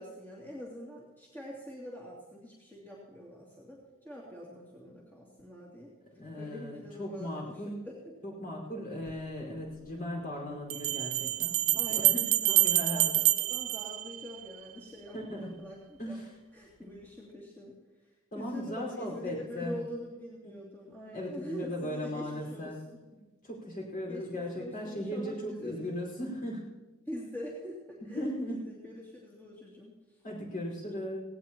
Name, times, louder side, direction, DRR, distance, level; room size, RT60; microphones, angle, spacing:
voice 1, 0.0-5.9 6.4-8.0 8.7-8.8 11.7-16.2 16.5-18.1 18.3-23.0 24.1-25.9 27.1-30.2, equal, 10° left, -6 dB, 2.7 m, -44 dB
voice 2, 6.2-7.8 8.2-12.2 12.5-13.1 15.1-15.5 16.0-16.3 18.3-19.7 20.4-20.5 21.1-22.8 23.1-26.7 28.1-28.6 30.2-31.2, left 1 dB, 40° left, -2 dB, 4.9 m, -37 dB
Bell, 9.1-9.2 10.7-14.6, right 15 dB, 70° right, 0.6 m, -27 dB
18.0 x 18.0 x 3.0 m, 1.1 s
head